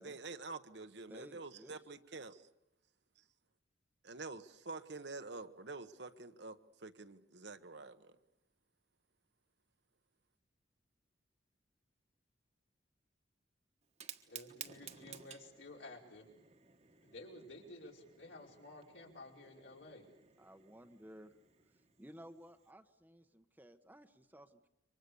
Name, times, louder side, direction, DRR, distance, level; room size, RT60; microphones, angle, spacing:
voice 1, 0.0-2.4 4.0-8.2, right 3 dB, 60° right, 9 dB, 1.2 m, -48 dB
voice 2, 1.1-1.8 20.4-21.3 21.7-24.7, equal, 10° right, 8 dB, 1.0 m, -56 dB
Fire, 13.8-22.7, right 8 dB, 35° right, 1.4 m, -56 dB
voice 3, 14.3-16.3 17.0-20.1, left 2 dB, 75° left, -1 dB, 5.0 m, -53 dB
28.0 x 24.5 x 6.9 m, 0.87 s
head